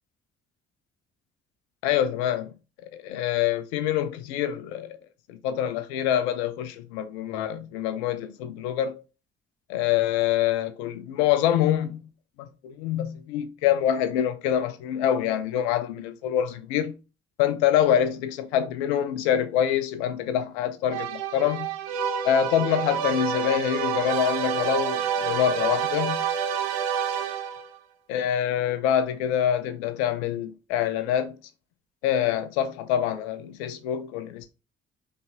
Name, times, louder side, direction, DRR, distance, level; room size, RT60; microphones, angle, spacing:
voice 1, 1.8-2.5 2.8-5.0 5.3-9.0 9.7-12.0 12.4-17.0 17.4-21.7 22.2-26.2 28.1-31.4 32.0-34.6, left 10 dB, 70° left, 0.6 m, -25 dB
sound 1, 20.9-27.7, right 7 dB, 70° right, 0.7 m, -28 dB
5.4 x 3.3 x 2.7 m
figure-of-eight pair, 40°, 34 cm